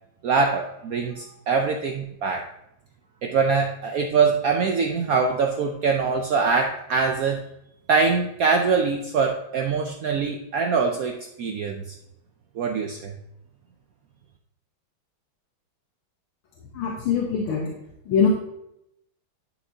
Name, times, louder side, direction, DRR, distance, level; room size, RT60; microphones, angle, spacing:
voice 1, 0.2-2.5 3.2-7.4 7.9-11.8 12.6-13.1, right 5 dB, 85° right, 3 dB, 0.7 m, -23 dB
voice 2, 16.7-17.7 18.1-18.3, left 7 dB, 85° left, -2 dB, 2.0 m, -23 dB
11.0 x 6.1 x 2.7 m, 0.82 s
omnidirectional pair, 2.2 m